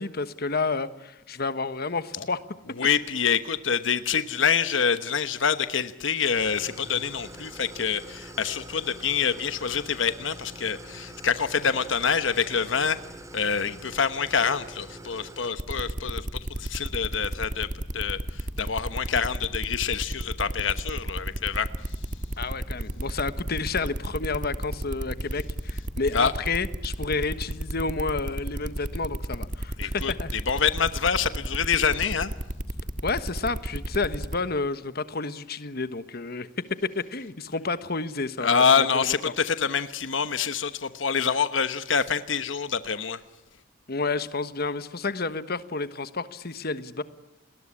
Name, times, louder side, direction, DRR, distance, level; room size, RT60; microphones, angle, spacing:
voice 1, 0.0-2.4 22.4-30.4 33.0-36.5 36.9-39.2 43.9-47.0, left 3 dB, 55° left, 12 dB, 1.3 m, -30 dB
voice 2, 2.8-13.0 13.3-21.7 26.1-26.3 29.8-32.3 38.4-43.2, left 6 dB, 80° left, 11 dB, 1.1 m, -26 dB
Idling, 6.3-15.5, right 1 dB, 15° right, 2.6 m, -44 dB
sound 1, 15.6-34.4, right 1 dB, 45° right, 1.7 m, -32 dB
29.5 x 20.5 x 9.8 m, 0.92 s
head